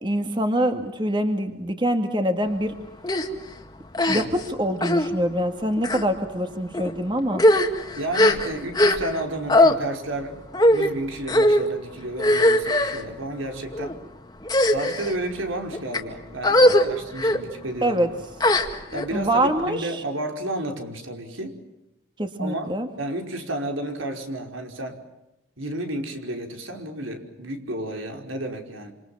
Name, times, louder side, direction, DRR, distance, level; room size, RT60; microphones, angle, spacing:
voice 1, 0.0-2.7 4.1-7.5 17.8-18.1 19.1-20.0 22.2-22.9, right 1 dB, 25° right, 6 dB, 2.2 m, -24 dB
sound 1, 3.0-3.3 3.9-4.5 4.8-5.1 5.8-6.0 6.7-6.9 7.3-9.2 9.5-9.7 10.5-10.9 11.3-11.6 12.2-13.0 13.7-13.9 14.4-15.1 15.7-16.0 16.4-16.8 17.2-17.4 18.4-19.1, left 1 dB, 20° left, 2.1 m, -19 dB
voice 2, 8.0-10.4 10.7-14.0 14.7-18.0 18.9-21.6 22.4-22.7 23.0-25.0 25.6-28.9, right 1 dB, 85° right, 4 dB, 5.3 m, -31 dB
27.5 x 27.5 x 7.3 m, 0.93 s
head